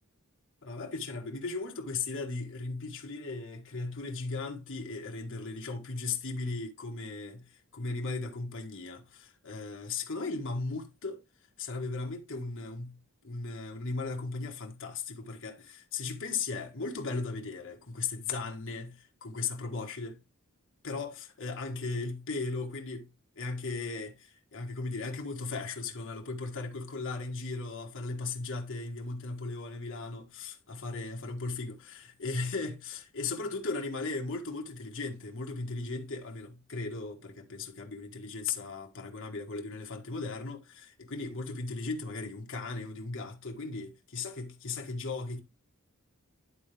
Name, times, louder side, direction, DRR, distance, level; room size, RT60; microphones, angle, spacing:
voice 1, 0.6-11.2 11.6-20.2 20.8-23.1 23.3-45.4, left 3 dB, 60° left, 1.6 m, -37 dB
11.0 x 4.0 x 3.3 m
head